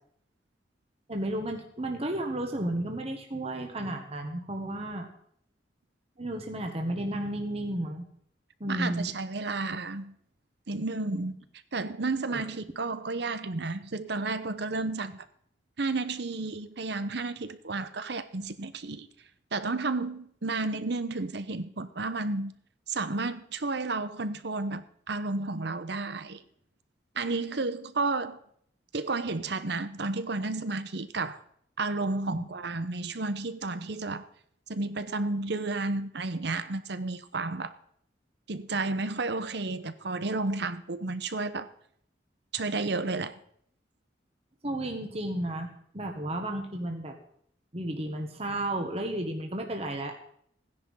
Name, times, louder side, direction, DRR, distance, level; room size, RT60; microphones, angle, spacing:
voice 1, 1.1-5.1 6.2-8.0 8.6-9.1 11.1-11.2 12.3-12.4 32.3-32.5 44.6-45.7 45.9-47.2 47.7-50.2, right 1 dB, 35° right, 1.5 m, -33 dB
voice 2, 8.7-10.1 10.7-11.4 11.7-15.2 15.8-19.1 19.5-22.5 22.9-26.4 27.1-28.4 28.9-31.4 31.8-34.2 34.7-37.7 38.5-41.7 42.5-43.4, right 3 dB, 65° right, 0.9 m, -32 dB
16.0 x 10.0 x 5.6 m
head